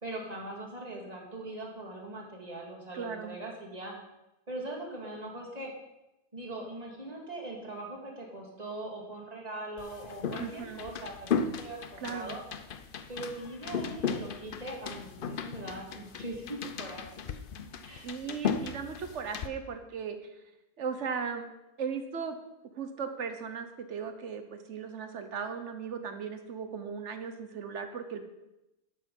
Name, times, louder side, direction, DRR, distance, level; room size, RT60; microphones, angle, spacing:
voice 1, 0.0-4.0 4.5-5.7 6.3-12.4 13.1-17.0 17.8-18.1, right 2 dB, 25° right, -1 dB, 2.2 m, -41 dB
voice 2, 2.9-3.4 10.4-10.8 12.0-12.3 18.0-20.2 20.8-21.5 21.8-22.4 22.8-28.2, right 6 dB, 50° right, 8 dB, 1.2 m, -37 dB
sound 1, 9.8-19.5, left 6 dB, 60° left, 0.5 m, -36 dB
11.5 x 6.8 x 5.4 m, 0.94 s
omnidirectional pair, 1.6 m